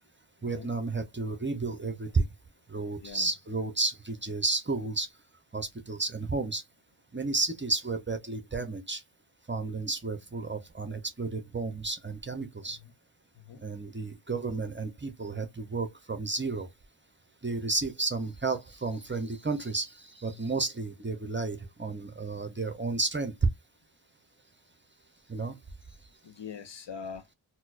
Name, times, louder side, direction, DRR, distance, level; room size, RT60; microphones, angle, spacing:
voice 1, 0.4-2.3 2.7-5.1 5.5-6.6 7.1-9.0 9.5-12.8 13.6-16.7 17.4-23.3 25.3-25.6, right 3 dB, 25° right, 0.6 m, -32 dB
voice 2, 3.0-3.3 12.8-12.9 13.4-13.6 20.3-20.5 26.2-27.2, left 6 dB, 60° left, 0.6 m, -43 dB
4.3 x 2.1 x 2.4 m
wide cardioid pair, 60°, 48 cm